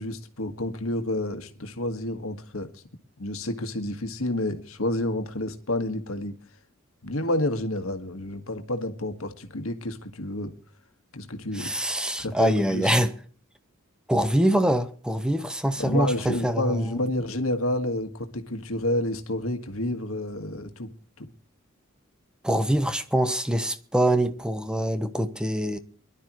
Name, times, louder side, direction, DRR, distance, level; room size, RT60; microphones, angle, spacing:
voice 1, 0.0-2.8 3.2-6.3 7.0-10.5 11.1-11.7 12.2-12.9 15.8-21.3, left 1 dB, 80° left, 1.7 m, -29 dB
voice 2, 11.5-13.1 14.1-17.0 22.4-25.8, right 1 dB, 5° right, 1.0 m, -24 dB
23.5 x 12.0 x 3.1 m
head